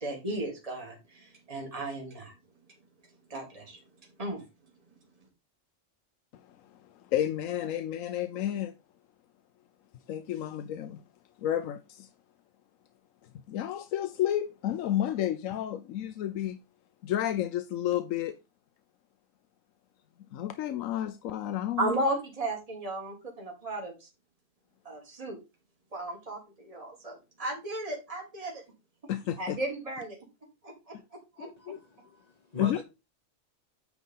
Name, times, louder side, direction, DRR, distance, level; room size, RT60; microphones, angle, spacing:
voice 1, 0.0-2.3 3.3-3.8 4.2-4.4 21.8-24.1 24.8-25.4 25.9-28.6 29.4-30.2 30.6-31.8, right 1 dB, 30° right, 2.1 m, -35 dB
voice 2, 7.1-8.8 10.1-11.0 11.4-12.1 13.5-16.6 17.0-18.4 20.3-21.9 29.1-29.6 31.7-31.8 32.6-32.8, left 11 dB, 90° left, 1.0 m, -31 dB
voice 3, 31.6-32.8, left 3 dB, 35° left, 1.1 m, -42 dB
9.4 x 3.5 x 5.3 m
omnidirectional pair, 1.3 m